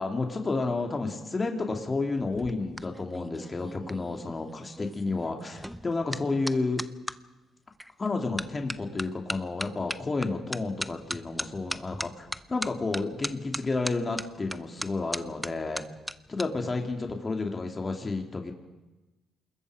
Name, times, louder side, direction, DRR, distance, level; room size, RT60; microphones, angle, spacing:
voice 1, 0.0-6.8 8.0-15.8 16.3-18.5, left 3 dB, 30° left, 3 dB, 2.8 m, -31 dB
sound 1, 2.2-7.2 7.8-8.1 8.4-16.5 16.7-17.1, equal, ahead, 0.7 m, -38 dB
27.0 x 21.5 x 5.0 m, 1.1 s
cardioid pair, 90°, 0 cm